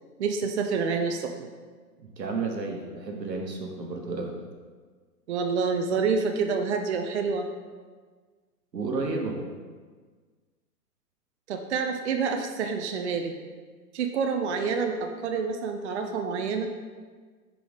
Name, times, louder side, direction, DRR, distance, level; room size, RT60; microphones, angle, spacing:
voice 1, 0.2-1.5 5.3-7.5 11.5-13.3 13.9-16.7, right 5 dB, 45° right, 5 dB, 0.5 m, -28 dB
voice 2, 2.0-4.3 8.7-9.4, right 3 dB, 90° right, 2 dB, 1.3 m, -32 dB
6.0 x 5.1 x 3.6 m, 1.5 s
hypercardioid pair, 140°, 48 cm